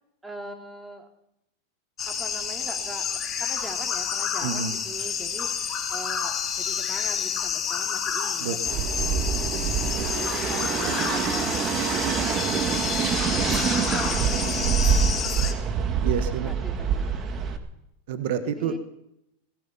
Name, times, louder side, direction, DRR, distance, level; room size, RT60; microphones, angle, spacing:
voice 1, 0.2-1.1 2.1-8.6 8.9-9.3 9.7-12.7 13.2-14.7 16.4-17.1 18.6-18.8, right 1 dB, 10° right, 3 dB, 2.6 m, -42 dB
sound 1, 2.0-15.5, left 7 dB, 25° left, 2.4 m, -29 dB
voice 2, 4.4-4.8 8.4-8.6 10.6-11.0 13.0-13.3 16.0-16.5 18.1-18.8, right 8 dB, 65° right, 10 dB, 1.3 m, -29 dB
sound 2, 8.6-17.6, right 7 dB, 35° right, 1.7 m, -26 dB
17.0 x 15.0 x 5.7 m, 0.83 s
hypercardioid pair, 120°, 0 cm